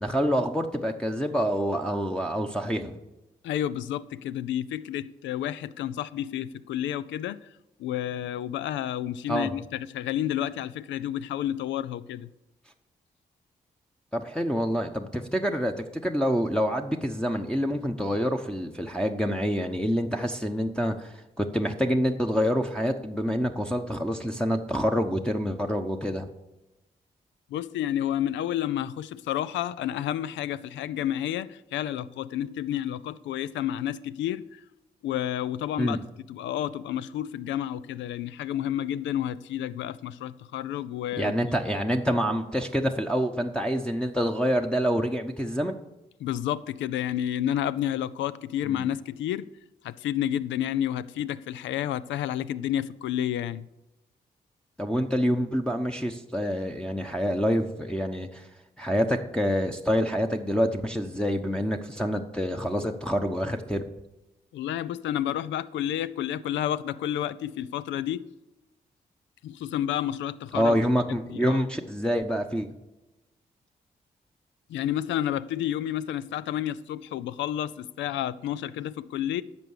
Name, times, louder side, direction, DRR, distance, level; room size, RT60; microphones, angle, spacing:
voice 1, 0.0-3.0 9.3-9.5 14.1-26.3 35.8-36.0 41.2-45.7 48.7-48.9 54.8-58.5 58.8-63.8 70.5-72.7, equal, 5° left, 1.0 m, -27 dB
voice 2, 3.4-7.5 7.8-12.3 27.5-34.6 35.0-36.0 36.3-41.3 46.2-49.5 49.8-53.7 64.5-68.3 69.4-70.8 71.1-71.6 74.7-79.4, left 11 dB, 80° left, 0.4 m, -30 dB
10.5 x 6.8 x 6.6 m
supercardioid pair, 40°, 19 cm